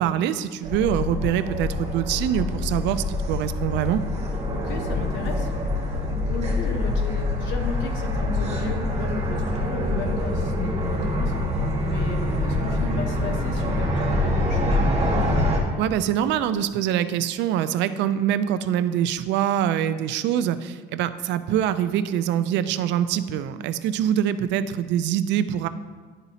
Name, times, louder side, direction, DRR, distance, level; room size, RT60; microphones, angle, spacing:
voice 1, 0.0-4.0 15.8-25.7, right 10 dB, 70° right, 12 dB, 0.4 m, -24 dB
sound 1, 0.6-15.6, left 1 dB, 35° right, 1.3 m, -25 dB
voice 2, 4.5-5.5 6.0-11.3 11.8-14.8, left 4 dB, 80° left, 3 dB, 1.0 m, -34 dB
11.0 x 4.0 x 2.8 m, 1.4 s
cardioid pair, 135°, 19 cm